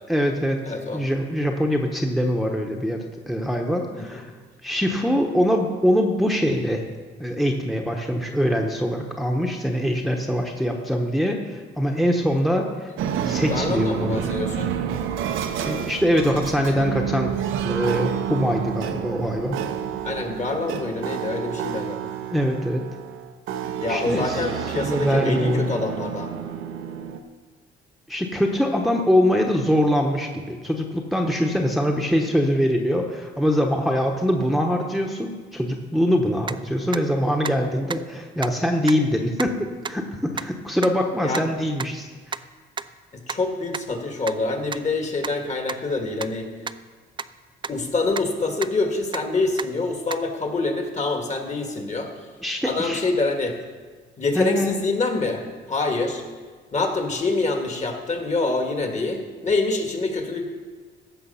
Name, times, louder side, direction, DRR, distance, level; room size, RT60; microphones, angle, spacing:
voice 1, 0.1-0.6 0.9-4.3 4.6-6.8 7.2-12.9 13.2-14.2 15.6-17.3 17.6-19.6 22.3-22.8 23.9-24.4 24.8-25.7 28.1-39.5 39.9-42.1 52.4-53.0 54.4-54.8, equal, ahead, 1 dB, 1.1 m, -23 dB
voice 2, 0.7-1.0 3.9-4.2 13.5-14.7 20.0-22.0 23.8-26.3 41.2-41.5 43.1-46.5 47.7-52.3 52.6-53.5 54.2-55.4 55.7-56.2 56.7-60.5, left 3 dB, 35° left, 3 dB, 2.0 m, -26 dB
sound 1, 13.0-27.2, right 9 dB, 85° right, 0.9 m, -29 dB
sound 2, 36.4-36.6 36.9-37.0 37.4-37.5 37.9-38.0 38.4-38.5 38.9-39.0 39.4-39.5 39.8-40.0 40.4-40.5 40.8-40.9 41.3-41.4 41.8-41.9 42.3-42.4 42.8-42.9 43.3-43.4 43.7-43.8 44.3-44.4 44.7-44.8 45.2-45.3 45.7-45.8 46.2-46.3 46.7-46.8 47.2-47.3 47.6-47.7 48.2-48.3 48.6-48.7 49.1-49.2 49.6-49.7 50.1-50.2, right 5 dB, 25° right, 0.4 m, -30 dB
15.0 x 6.1 x 5.7 m, 1.4 s
cardioid pair, 90°, 20 cm